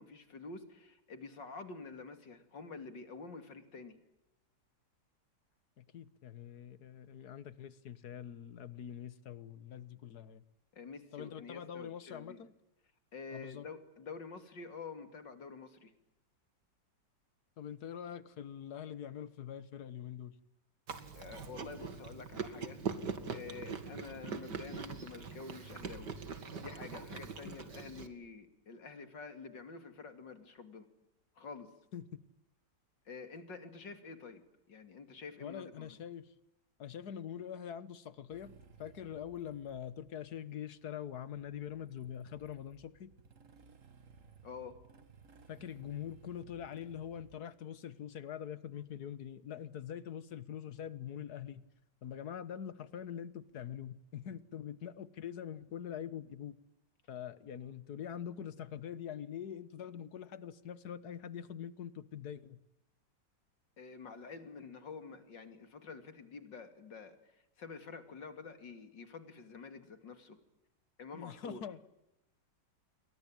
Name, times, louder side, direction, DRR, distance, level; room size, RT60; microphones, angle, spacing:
voice 1, 0.0-3.9 10.7-12.4 13.1-15.9 21.1-22.8 23.3-26.1 26.6-30.9 31.4-31.7 33.0-34.4 34.7-36.0 44.4-44.8 63.8-67.2 67.6-70.4 71.0-71.6, left 4 dB, 85° left, 9 dB, 3.4 m, -48 dB
voice 2, 5.8-10.4 11.1-12.5 13.3-13.7 17.6-20.4 27.1-27.2 27.5-27.6 31.9-32.2 35.4-36.3 36.8-38.5 38.8-43.1 45.5-51.6 52.0-56.6 57.1-62.6 71.1-71.8, left 9 dB, 60° left, 16 dB, 1.8 m, -44 dB
Chewing mastication, 20.9-28.1, right 5 dB, 70° right, 2.8 m, -42 dB
Motorcycle / Engine starting, 38.3-47.4, right 5 dB, 45° right, 2.0 m, -60 dB
29.0 x 23.0 x 8.9 m, 0.88 s
omnidirectional pair, 1.9 m